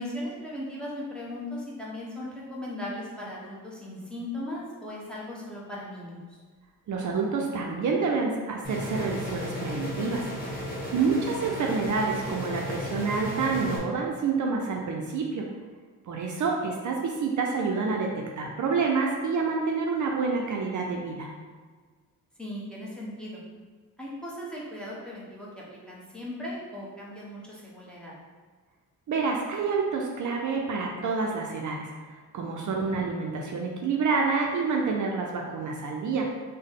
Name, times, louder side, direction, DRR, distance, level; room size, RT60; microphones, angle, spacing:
voice 1, 0.0-6.4 22.4-23.4 24.0-28.1 32.9-33.0, left 1 dB, 5° left, -6 dB, 0.9 m, -38 dB
voice 2, 6.9-10.2 10.9-15.4 16.0-21.3 29.1-36.3, right 4 dB, 55° right, 0 dB, 0.5 m, -28 dB
sound 1, 8.6-13.8, left 1 dB, 25° left, 1.0 m, -34 dB
3.6 x 2.1 x 3.6 m, 1.5 s
cardioid pair, 95°, 36 cm